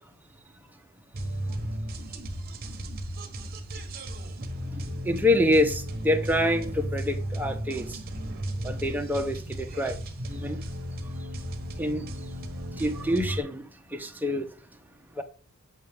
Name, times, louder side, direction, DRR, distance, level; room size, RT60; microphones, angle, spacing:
sound 1, 1.1-13.4, equal, 45° right, 1.2 m, -35 dB
voice 1, 4.7-8.0 8.6-10.0 10.3-10.6 11.8-12.1 12.7-13.6 13.9-14.4 15.2-15.3, left 1 dB, 10° right, 0.8 m, -26 dB
8.0 x 5.7 x 3.5 m
head